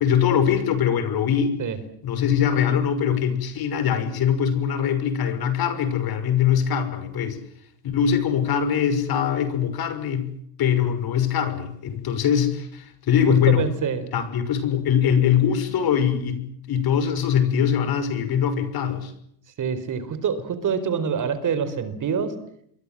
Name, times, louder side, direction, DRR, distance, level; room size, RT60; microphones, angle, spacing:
voice 1, 0.0-1.5 2.0-7.4 7.8-10.3 10.6-13.6 14.1-16.4 16.7-19.1, left 8 dB, 50° left, 11 dB, 6.1 m, -22 dB
voice 2, 13.3-14.1 19.6-22.4, right 6 dB, 40° right, 13 dB, 4.5 m, -26 dB
28.5 x 23.0 x 7.7 m, 0.69 s
supercardioid pair, 115°, 48 cm